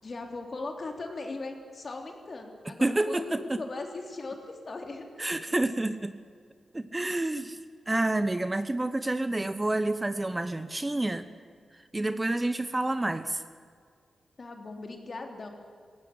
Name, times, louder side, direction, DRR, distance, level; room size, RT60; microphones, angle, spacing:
voice 1, 0.0-5.3 11.9-12.4 14.4-15.5, left 3 dB, 45° left, 3 dB, 3.3 m, -39 dB
voice 2, 2.8-3.6 5.2-6.1 6.7-7.6 7.9-11.3 11.9-13.4, right 2 dB, 20° right, 11 dB, 0.9 m, -28 dB
18.0 x 16.5 x 9.8 m, 2.1 s
cardioid pair, 85°, 0 cm